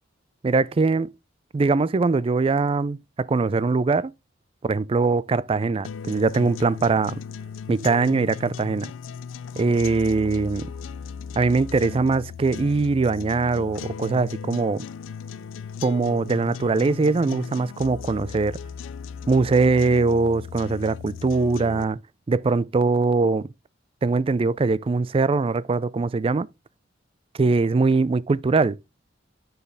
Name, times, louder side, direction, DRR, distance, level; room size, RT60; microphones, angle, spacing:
voice 1, 0.4-1.1 1.5-4.1 4.6-7.2 7.7-8.9 9.6-10.7 11.4-14.9 15.8-18.6 19.3-22.0 22.3-23.5 24.0-26.5 27.4-28.7, right 3 dB, 30° right, 0.3 m, -22 dB
sound 1, 5.8-21.8, left 6 dB, 85° left, 0.4 m, -37 dB
10.0 x 4.6 x 3.5 m
head